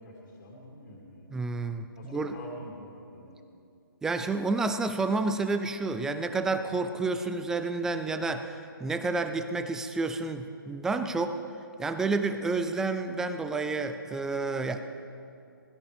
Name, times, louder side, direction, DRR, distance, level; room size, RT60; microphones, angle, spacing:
voice 1, 0.0-1.3 1.9-3.4, equal, 55° left, -3 dB, 2.6 m, -46 dB
voice 2, 1.3-2.4 4.0-11.4 11.8-14.8, right 3 dB, 5° right, 8 dB, 0.3 m, -30 dB
21.0 x 13.0 x 3.4 m, 2.6 s
hypercardioid pair, 145°, 12 cm